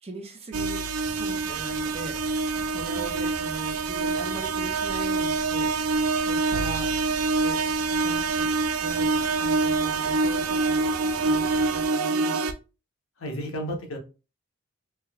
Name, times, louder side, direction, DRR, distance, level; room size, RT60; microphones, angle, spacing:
voice 1, 0.0-0.9 1.1-2.2 2.6-8.5 8.8-12.4, right 2 dB, 30° right, 3 dB, 0.6 m, -39 dB
sound 1, 0.5-12.5, right 3 dB, 85° right, 0.4 m, -26 dB
sound 2, 1.0-11.9, equal, 15° left, 0.4 m, -45 dB
voice 2, 13.2-14.0, equal, 75° left, 2 dB, 0.9 m, -32 dB
3.4 x 2.8 x 2.3 m, 0.31 s
head